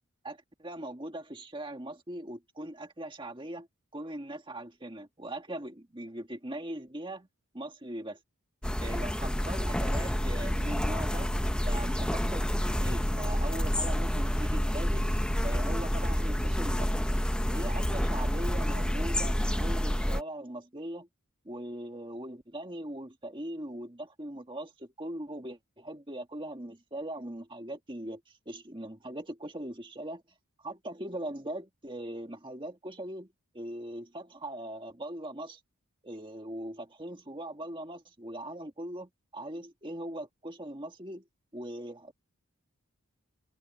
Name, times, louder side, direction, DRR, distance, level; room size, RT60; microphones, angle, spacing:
voice 1, 0.2-3.7 3.9-7.3 7.5-8.2 8.8-11.3 11.7-15.1 15.4-17.1 17.5-21.1 21.4-30.2 30.6-33.3 33.5-35.6 36.0-41.2 41.5-42.1, right 1 dB, 20° right, 1.8 m, -40 dB
sound 1, 8.6-20.2, equal, 5° left, 0.6 m, -29 dB
head